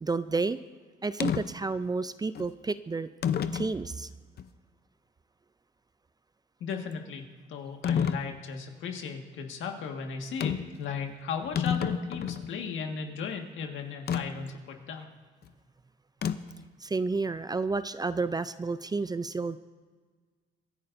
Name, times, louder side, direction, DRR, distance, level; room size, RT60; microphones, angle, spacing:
voice 1, 0.0-0.6 1.0-3.1 3.5-4.1 16.8-19.6, right 3 dB, 20° right, 13 dB, 0.4 m, -30 dB
sound 1, 1.2-1.4 2.3-2.5 3.2-3.7 4.4-4.5 7.8-8.2 10.4-10.8 11.1-11.2 11.4-12.5 14.1-14.2 16.2-16.6, left 8 dB, 55° left, 0.7 m, -29 dB
voice 2, 6.6-15.1, left 6 dB, 80° left, 3 dB, 1.7 m, -36 dB
25.5 x 11.0 x 2.6 m, 1.5 s
cardioid pair, 90°, 20 cm